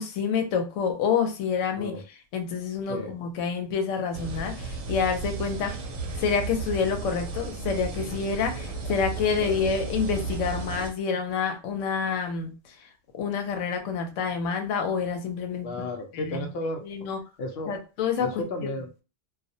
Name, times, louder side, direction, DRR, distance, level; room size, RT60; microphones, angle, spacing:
voice 1, 0.0-5.7 6.2-12.9 13.1-15.9 16.1-16.4 16.8-17.2 17.7-18.4, left 6 dB, 90° left, 5 dB, 0.9 m, -28 dB
sound 1, 4.1-10.9, right 4 dB, 75° right, 0.9 m, -34 dB
voice 2, 15.6-16.8 17.4-17.7 18.2-19.0, left 2 dB, 60° left, 4 dB, 0.7 m, -33 dB
2.3 x 2.0 x 2.6 m, 0.31 s
omnidirectional pair, 1.2 m